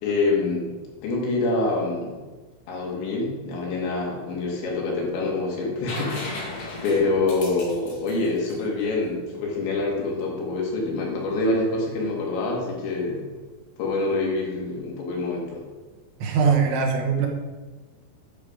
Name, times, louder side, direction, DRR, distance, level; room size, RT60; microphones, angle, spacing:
voice 1, 0.0-0.8 1.0-2.2 2.7-6.5 6.8-13.3 13.8-15.6, left 3 dB, 70° left, -2 dB, 4.2 m, -26 dB
sound 1, 5.9-9.6 11.4-11.5, left 2 dB, 50° left, 1.9 m, -36 dB
voice 2, 16.2-17.3, right 6 dB, 75° right, 1 dB, 3.6 m, -21 dB
11.0 x 6.6 x 5.1 m, 1.3 s
omnidirectional pair, 5.6 m